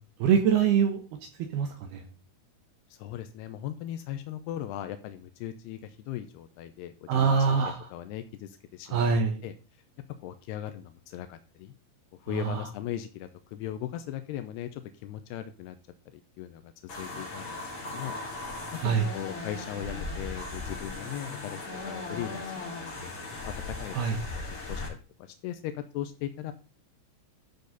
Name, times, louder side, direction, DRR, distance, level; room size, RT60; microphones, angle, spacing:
voice 1, 0.2-1.0 1.5-2.0 7.1-7.9 8.9-9.4 12.3-12.7 18.8-19.1 23.9-24.2, right 6 dB, 75° right, 5 dB, 2.5 m, -24 dB
voice 2, 2.9-7.3 7.9-9.1 9.4-9.5 10.2-11.7 12.2-15.8 16.4-16.7 17.0-17.6 17.9-18.1 19.1-23.1 23.4-23.5 23.8-25.0 25.4-26.5, left 12 dB, 90° left, 9 dB, 2.3 m, -38 dB
sound 1, 16.9-24.9, left 2 dB, 30° left, 3.2 m, -38 dB
12.5 x 6.6 x 4.0 m, 0.36 s
omnidirectional pair, 5.5 m